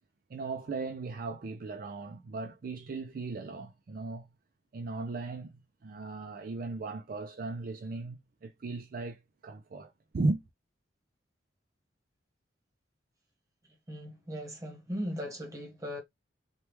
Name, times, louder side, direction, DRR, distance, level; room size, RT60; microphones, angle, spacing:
voice 1, 0.3-4.3 4.7-10.4, right 3 dB, 50° right, 0.4 m, -37 dB
voice 2, 13.9-16.0, equal, 15° right, 1.0 m, -38 dB
3.3 x 2.3 x 3.0 m
head